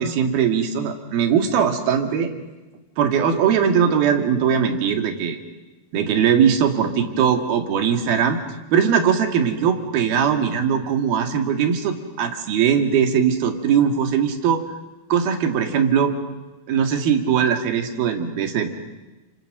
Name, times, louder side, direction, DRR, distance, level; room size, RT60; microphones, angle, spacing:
voice 1, 0.0-2.3 3.0-5.4 5.9-8.4 8.7-14.6 15.1-16.1 16.7-18.7, right 7 dB, 70° right, 5 dB, 3.7 m, -20 dB
30.0 x 26.5 x 6.5 m, 1.1 s
omnidirectional pair, 4.5 m